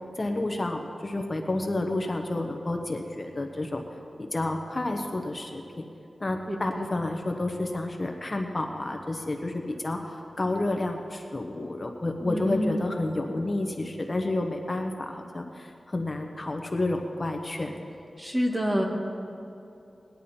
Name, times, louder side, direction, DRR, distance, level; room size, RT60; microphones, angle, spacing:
voice 1, 0.2-3.8 4.2-5.8 6.2-17.9, left 2 dB, 35° left, 3 dB, 1.0 m, -30 dB
voice 2, 6.5-6.9 12.2-12.9 18.2-18.8, equal, 25° right, 0 dB, 1.8 m, -28 dB
19.5 x 10.5 x 4.3 m, 2.7 s
wide cardioid pair, 90°, 0 cm